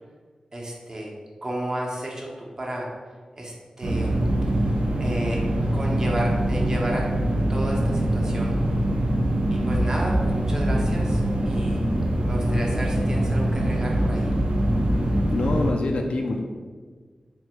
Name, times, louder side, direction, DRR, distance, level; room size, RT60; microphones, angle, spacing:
voice 1, 0.5-1.1 1.4-2.9 3.3-4.2 5.0-5.4 5.7-7.1 7.5-8.6 9.5-11.8 12.3-14.3, right 1 dB, 35° right, -2 dB, 0.8 m, -32 dB
sound 1, 3.8-15.7, right 1 dB, 80° right, 0.5 m, -23 dB
voice 2, 15.3-16.4, left 2 dB, 80° left, 2 dB, 0.3 m, -25 dB
3.2 x 3.2 x 3.0 m, 1.5 s
wide cardioid pair, 90°, 2 cm